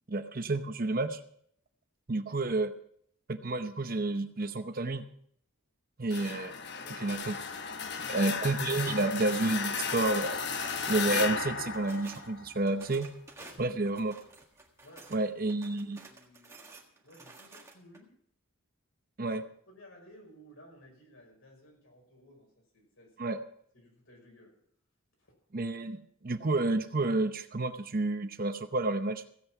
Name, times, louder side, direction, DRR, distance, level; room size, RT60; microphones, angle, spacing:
voice 1, 0.1-1.2 2.1-2.7 3.3-5.0 6.0-6.5 7.0-7.4 8.1-10.4 10.9-13.1 13.6-14.1 15.1-16.0 19.2-19.4 23.2-23.4 25.5-29.2, right 2 dB, 40° right, 9 dB, 0.8 m, -30 dB
sound 1, 6.1-12.8, left 5 dB, 55° left, 1.0 m, -35 dB
voice 2, 6.8-7.2 8.0-8.2 13.4-13.9 14.8-15.3 15.7-18.1 19.2-19.3 19.7-23.4 23.7-24.6 25.2-25.3, equal, 70° left, 0 dB, 5.6 m, -57 dB
sound 2, 10.6-11.0 11.4-12.3 12.7-15.2 15.5-18.0, right 3 dB, 15° right, 1.6 m, -52 dB
15.5 x 8.5 x 5.9 m, 0.65 s
head